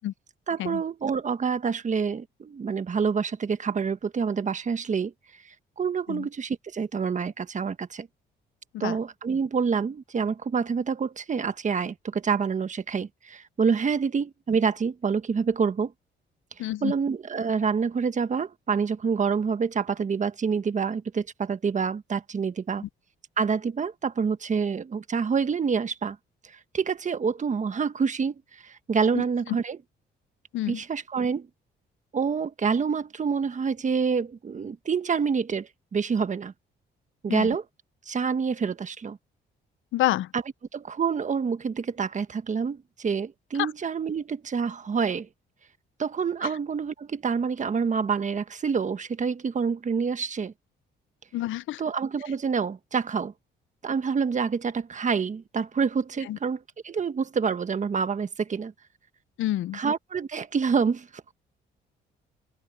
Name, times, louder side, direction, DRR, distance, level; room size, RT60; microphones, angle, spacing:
voice 1, 0.5-5.1 5.8-8.1 8.8-15.9 16.6-22.8 23.4-26.2 26.7-28.3 28.6-29.8 30.7-31.5 32.1-36.5 37.2-37.6 38.1-39.2 40.3-40.4 40.7-45.3 46.0-50.5 51.8-53.3 53.8-58.7 59.7-61.3, right 5 dB, 40° right, 1.3 m, -27 dB
voice 2, 16.6-16.9 29.1-29.2 30.5-30.8 37.3-37.5 39.9-40.3 43.6-43.7 51.3-51.8 56.3-56.4 59.4-59.8, left 14 dB, 80° left, 0.6 m, -28 dB
cardioid pair, 90°, 20 cm